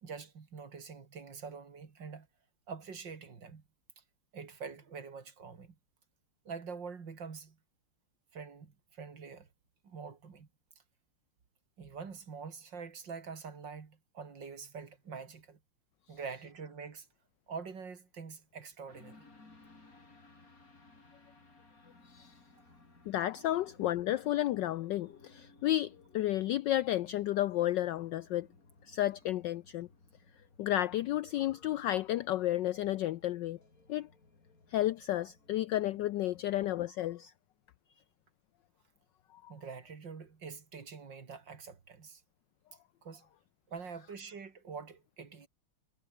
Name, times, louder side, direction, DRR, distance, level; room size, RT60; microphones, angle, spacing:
voice 1, 0.0-2.3 2.7-3.6 4.0-4.1 4.3-5.7 6.4-7.6 8.3-9.5 9.8-10.5 11.8-15.6 16.1-17.1 17.5-19.3 23.5-23.6 39.5-42.2 43.0-43.3 43.7-45.5, right 5 dB, 55° right, 3.1 m, -45 dB
sound 1, 18.9-36.8, left 3 dB, 40° left, 4.7 m, -61 dB
voice 2, 23.1-28.5 28.8-29.9 30.6-33.6 33.9-34.1 34.7-37.3 39.3-39.5, left 13 dB, 75° left, 1.0 m, -32 dB
omnidirectional pair, 2.4 m